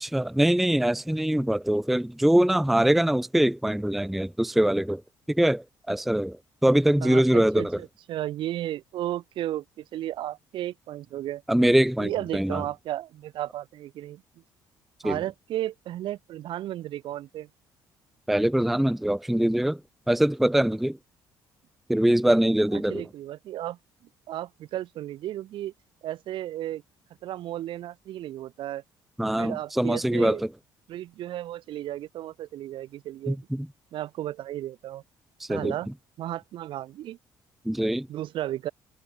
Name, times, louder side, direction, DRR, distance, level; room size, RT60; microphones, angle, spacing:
voice 1, 0.0-5.0 5.3-6.4 6.6-7.8 11.5-12.6 15.0-15.2 18.3-19.8 20.1-21.0 21.9-23.0 29.2-30.5 33.3-33.7 35.5-35.7 37.7-38.1, right 1 dB, ahead, 0.4 m, -23 dB
voice 2, 7.0-11.4 12.0-14.2 15.0-17.5 22.7-23.8 24.3-25.7 26.0-26.8 27.2-28.8 29.4-30.4 30.9-33.4 33.9-35.0 35.5-35.9 36.2-37.2 38.1-38.7, right 13 dB, 65° right, 1.0 m, -34 dB
cardioid pair, 90°, 9 cm